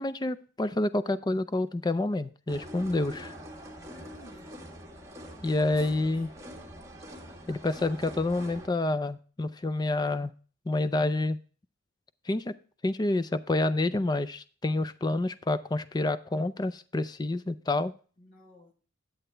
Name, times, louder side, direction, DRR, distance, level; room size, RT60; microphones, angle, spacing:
voice 1, 0.0-3.3 5.4-6.3 7.5-10.3 10.7-11.4 12.3-12.6 12.8-17.9, left 2 dB, 20° left, 14 dB, 0.4 m, -28 dB
sound 1, 2.5-8.7, equal, 15° right, 1.5 m, -44 dB
voice 2, 3.9-4.5 5.5-6.2 18.2-18.7, equal, 45° left, 0 dB, 1.4 m, -54 dB
10.0 x 7.8 x 3.3 m, 0.40 s
head